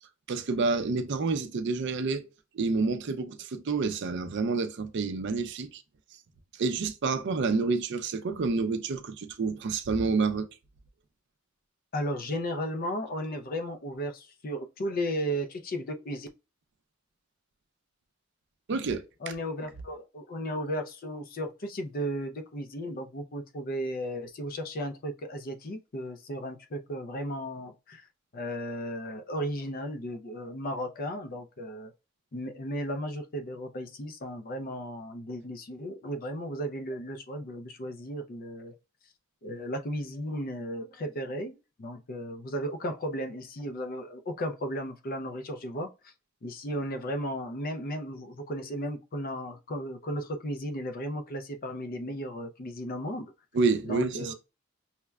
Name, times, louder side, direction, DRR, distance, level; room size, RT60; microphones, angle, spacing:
voice 1, 0.3-2.3 2.5-5.8 6.6-10.5 18.7-19.0 53.5-54.3, right 4 dB, 60° right, 0.4 m, -28 dB
voice 2, 11.9-16.3 19.2-28.1 28.3-31.9 32.3-38.8 39.0-39.1 39.4-46.1 46.4-53.3 53.8-54.3, equal, 45° left, 0.5 m, -35 dB
5.6 x 2.1 x 2.3 m
head